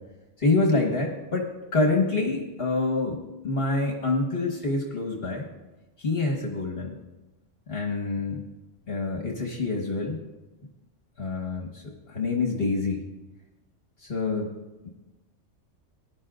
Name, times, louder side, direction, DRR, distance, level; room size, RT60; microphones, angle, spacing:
voice 1, 0.4-5.5 6.0-7.0 7.7-8.4 8.9-10.2 11.2-13.0 14.0-14.5 14.8-14.9, left 3 dB, 55° left, 0 dB, 1.6 m, -26 dB
19.0 x 11.0 x 2.5 m, 1.1 s
omnidirectional pair, 1.2 m